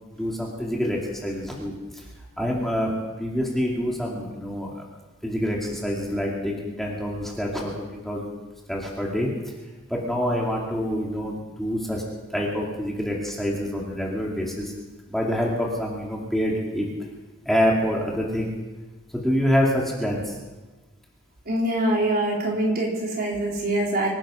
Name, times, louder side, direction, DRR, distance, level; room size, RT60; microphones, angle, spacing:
voice 1, 0.1-2.0 2.4-2.9 3.2-4.8 5.2-8.3 8.7-9.3 9.9-12.0 12.3-14.7 15.1-16.9 17.5-18.5 19.1-20.3, equal, ahead, -3 dB, 2.5 m, -26 dB
voice 2, 21.5-24.1, right 1 dB, 45° right, -2 dB, 4.1 m, -24 dB
25.0 x 11.0 x 5.1 m, 1.2 s
head